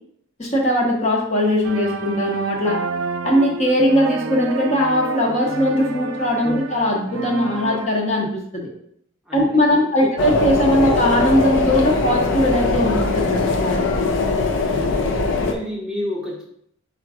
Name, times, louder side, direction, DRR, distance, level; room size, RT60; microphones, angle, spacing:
voice 1, 0.4-2.8 3.2-8.7 9.3-13.9, equal, 30° left, -1 dB, 0.7 m, -20 dB
sound 1, 1.6-7.9, right 4 dB, 75° right, 0.3 m, -30 dB
voice 2, 9.3-10.1 14.6-16.4, left 1 dB, 5° right, -4 dB, 0.8 m, -31 dB
sound 2, 10.2-15.5, left 3 dB, 60° left, 0.5 m, -20 dB
4.4 x 2.4 x 4.7 m, 0.70 s
head